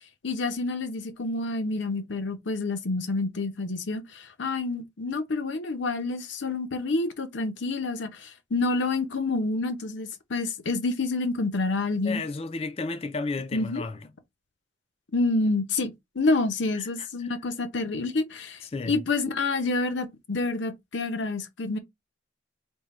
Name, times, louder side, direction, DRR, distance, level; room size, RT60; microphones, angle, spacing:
voice 1, 0.2-12.2 13.5-13.8 15.1-21.8, left 3 dB, 80° left, 0.7 m, -28 dB
voice 2, 12.0-14.0 16.7-17.4 18.6-19.0, left 3 dB, 30° left, 0.4 m, -33 dB
3.6 x 2.2 x 4.1 m
head